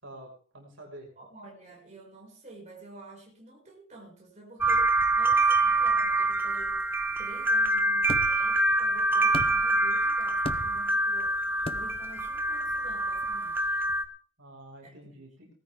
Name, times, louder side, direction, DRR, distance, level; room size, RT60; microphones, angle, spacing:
voice 1, 0.0-1.1 14.4-15.5, right 1 dB, 60° right, -1 dB, 5.2 m, -47 dB
voice 2, 1.2-6.8 7.2-11.4 11.7-13.7 14.8-15.2, right 2 dB, 35° right, -2 dB, 5.6 m, -49 dB
sound 1, 4.6-14.0, right 2 dB, 10° right, 1.0 m, -25 dB
sound 2, 8.1-8.5 9.3-9.8 10.4-10.9 11.6-12.1, left 2 dB, 25° left, 0.7 m, -36 dB
19.5 x 13.0 x 3.6 m, 0.42 s
head